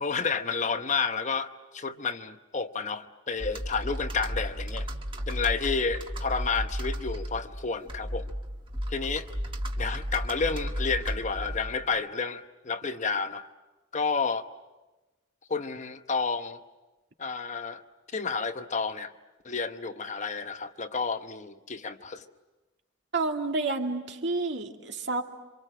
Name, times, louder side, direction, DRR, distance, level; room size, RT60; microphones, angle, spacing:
voice 1, 0.0-4.9 5.3-8.3 8.9-9.3 9.8-13.5 13.9-14.4 15.5-16.6 17.2-17.8 18.1-19.1 19.4-22.3, left 5 dB, 35° left, 0.9 m, -30 dB
Computer keyboard, 3.4-12.0, equal, 25° right, 1.6 m, -34 dB
voice 2, 23.1-25.2, right 3 dB, 60° right, 2.3 m, -29 dB
27.5 x 26.0 x 7.7 m
head